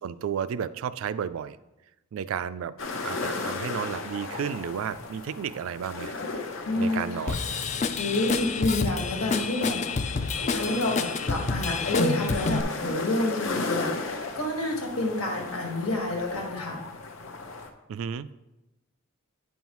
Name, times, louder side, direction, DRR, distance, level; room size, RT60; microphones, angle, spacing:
voice 1, 0.0-1.6 2.1-2.8 3.0-6.1 6.8-7.4 17.9-18.4, right 8 dB, 80° right, 15 dB, 0.3 m, -32 dB
sound 1, 2.8-17.7, left 3 dB, 70° left, 0.8 m, -36 dB
voice 2, 6.6-7.0 8.0-9.8 10.5-16.8, left 2 dB, 90° left, 0 dB, 1.6 m, -28 dB
Drum kit / Drum, 7.3-12.6, left 4 dB, 35° left, 0.3 m, -28 dB
9.2 x 5.5 x 3.0 m, 0.99 s
head